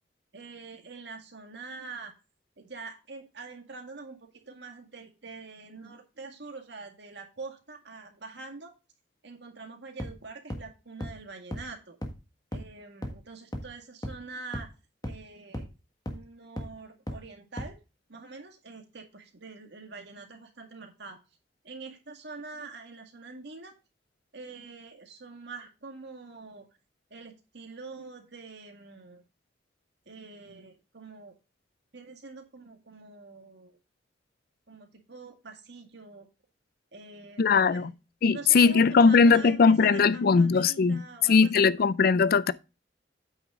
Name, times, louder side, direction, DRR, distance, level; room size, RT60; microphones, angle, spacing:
voice 1, 0.3-2.1 2.6-8.7 9.2-12.0 12.5-14.7 15.0-15.7 16.1-17.8 18.1-21.2 21.6-23.7 24.3-26.7 27.1-29.2 30.1-31.4 31.9-33.8 34.7-36.3 36.9-37.4 37.7-37.9 38.3-41.5 41.8-41.9, right 4 dB, 65° right, 2.0 m, -45 dB
sound 1, 10.0-10.1 10.5-10.6 11.0-11.1 11.5-11.6 12.0-12.1 12.5-12.6 13.0-13.1 13.5-13.6 14.0-14.1 14.5-14.6 15.0-15.1 15.5-15.6 16.1-16.2 16.6-16.7 17.1-17.2 17.6-17.7, equal, 20° left, 1.6 m, -34 dB
voice 2, 37.4-37.9 38.2-42.5, left 5 dB, 55° left, 0.4 m, -20 dB
8.7 x 6.3 x 3.7 m
head